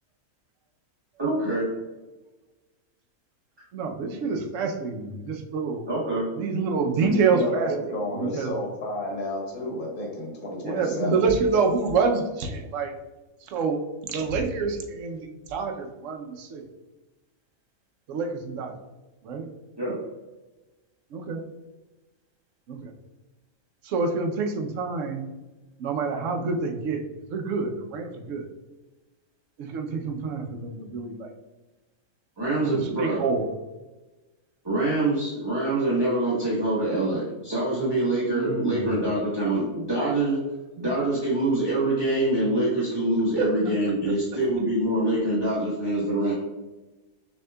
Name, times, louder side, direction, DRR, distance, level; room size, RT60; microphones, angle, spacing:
voice 1, 1.2-1.7 5.9-6.3 19.8-20.0 32.4-33.2 34.6-40.4 40.8-46.3, right 1 dB, 20° right, -8 dB, 1.1 m, -25 dB
voice 2, 3.7-5.8 6.4-7.7 8.1-8.5 10.6-12.9 13.4-13.8 14.1-16.7 18.1-18.7 19.2-19.5 21.1-21.4 22.7-22.9 23.8-25.2 25.8-27.0 27.3-28.4 29.6-31.3 32.6-33.5 38.3-39.0 43.4-43.5, right 4 dB, 65° right, 4 dB, 1.0 m, -27 dB
voice 3, 7.0-11.2, left 1 dB, 85° left, -1 dB, 1.7 m, -31 dB
6.4 x 3.5 x 2.2 m, 1.1 s
omnidirectional pair, 1.5 m